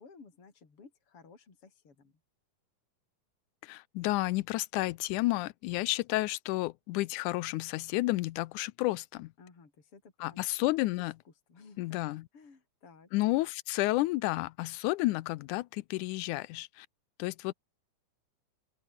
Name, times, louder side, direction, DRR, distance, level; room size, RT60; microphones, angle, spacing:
voice 1, 0.0-2.1 9.4-10.5 11.2-12.0 12.3-13.1, left 4 dB, 45° left, 5.0 m, -56 dB
voice 2, 3.6-9.3 10.2-11.1 11.8-12.2 13.1-16.9 17.2-17.5, left 19 dB, 85° left, 2.1 m, -31 dB
open air
omnidirectional pair, 3.6 m